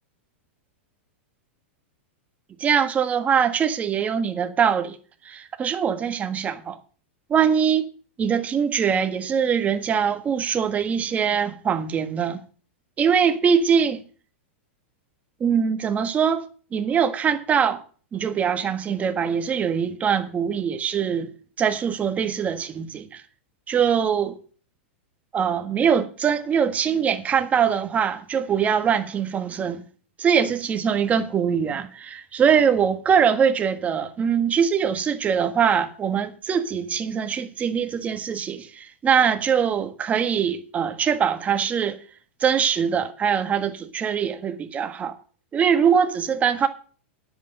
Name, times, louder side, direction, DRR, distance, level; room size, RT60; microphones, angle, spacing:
voice 1, 2.6-5.0 5.2-6.8 7.3-7.9 8.2-12.4 13.0-14.0 15.4-16.4 16.7-17.8 18.1-21.3 21.6-23.2 23.7-24.4 25.3-29.8 30.2-42.0 42.4-45.2 45.5-46.7, right 7 dB, 20° right, 1.5 m, -22 dB
10.5 x 8.4 x 6.6 m
hypercardioid pair, 130°, 7 cm